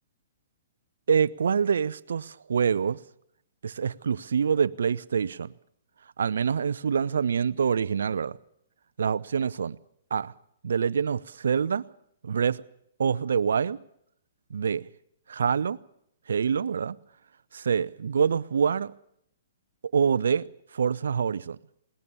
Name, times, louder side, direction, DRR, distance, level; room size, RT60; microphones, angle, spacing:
voice 1, 1.1-3.0 3.6-5.5 6.2-8.4 9.0-9.8 10.1-10.3 10.6-11.8 12.2-12.6 13.0-13.8 14.5-14.8 15.3-15.8 16.3-17.0 17.5-18.9 19.9-20.4 20.7-21.6, right 6 dB, 75° right, 0.7 m, -25 dB
21.0 x 19.0 x 7.0 m
hypercardioid pair, 125°, 0 cm